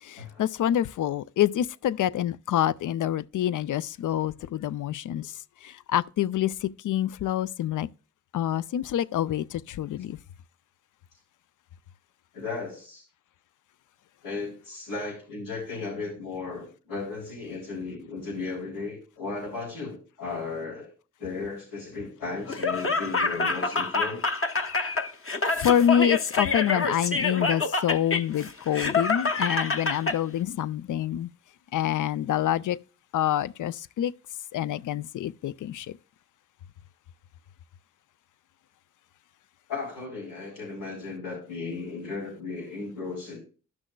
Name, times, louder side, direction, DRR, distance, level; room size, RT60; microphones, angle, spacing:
voice 1, 0.0-7.9 8.3-10.2 24.8-25.1 25.5-31.3 31.7-32.8 33.1-34.1 34.5-35.9, left 10 dB, 65° left, 0.5 m, -27 dB
voice 2, 12.3-13.0 14.2-20.9 21.2-24.2 39.7-43.4, left 4 dB, 90° left, 3.4 m, -35 dB
Laughter, 22.5-30.2, left 4 dB, 40° left, 1.0 m, -27 dB
12.5 x 6.2 x 2.2 m
cardioid pair, 45°, 33 cm